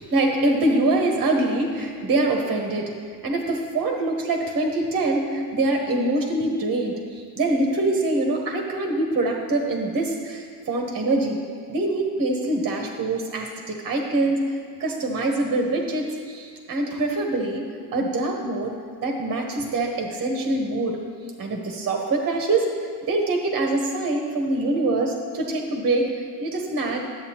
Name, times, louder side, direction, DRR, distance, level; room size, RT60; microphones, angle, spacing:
voice 1, 0.0-2.9 3.2-11.4 11.7-21.0 21.4-22.7 23.1-26.1 26.4-27.1, right 2 dB, 30° right, 1 dB, 1.0 m, -24 dB
11.0 x 8.0 x 2.9 m, 2.1 s
supercardioid pair, 105°, 47 cm